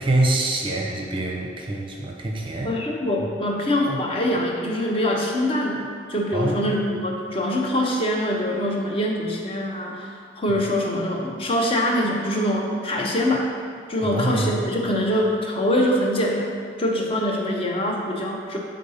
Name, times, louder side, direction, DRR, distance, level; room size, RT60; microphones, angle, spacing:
voice 1, 0.0-2.7 6.3-6.7 14.0-14.5, right 2 dB, 30° right, 0 dB, 0.6 m, -25 dB
voice 2, 2.6-13.5 13.9-16.5 16.8-18.6, left 1 dB, 30° left, 0 dB, 0.7 m, -24 dB
5.1 x 3.8 x 5.5 m, 2.2 s
head